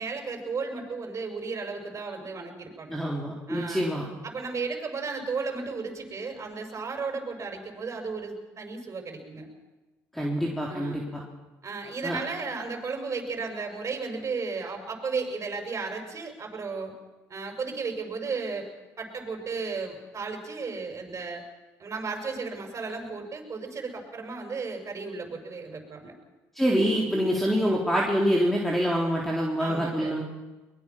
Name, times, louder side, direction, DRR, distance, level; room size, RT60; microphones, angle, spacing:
voice 1, 0.0-3.0 3.5-3.8 4.2-9.5 10.7-11.1 11.6-16.9 17.3-18.7 19.0-21.4 21.8-26.1 29.6-30.2, right 4 dB, 40° right, 3 dB, 6.3 m, -34 dB
voice 2, 2.9-4.0 10.1-11.2 12.0-12.2 26.6-30.2, equal, 5° left, -2 dB, 3.8 m, -26 dB
23.0 x 21.5 x 6.0 m, 1.2 s
hypercardioid pair, 65°, 8 cm